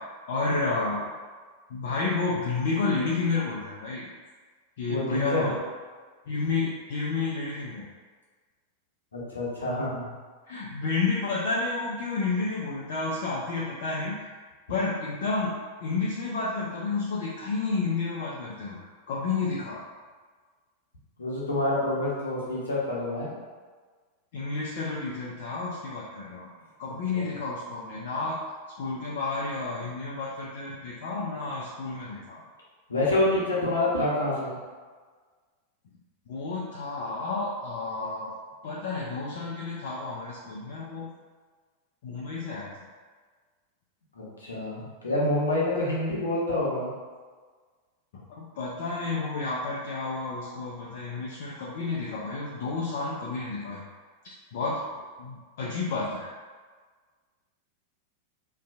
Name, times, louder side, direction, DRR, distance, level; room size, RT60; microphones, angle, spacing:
voice 1, 0.3-1.0 1.7-4.1 4.8-5.5 6.3-7.9 10.5-14.2 14.7-15.5 15.8-18.8 19.1-19.8 24.3-26.5 26.8-28.4 28.8-32.4 36.3-38.3 38.6-41.1 42.0-42.7 48.4-53.8 54.5-54.8 55.2-56.4, left 3 dB, 55° left, -6 dB, 0.3 m, -30 dB
voice 2, 4.9-5.5 9.1-10.1 21.2-23.3 26.8-27.3 32.9-34.6 44.1-46.9, left 1 dB, 75° left, -6 dB, 0.7 m, -27 dB
2.6 x 2.2 x 2.4 m, 1.5 s
figure-of-eight pair, 90°, 0 cm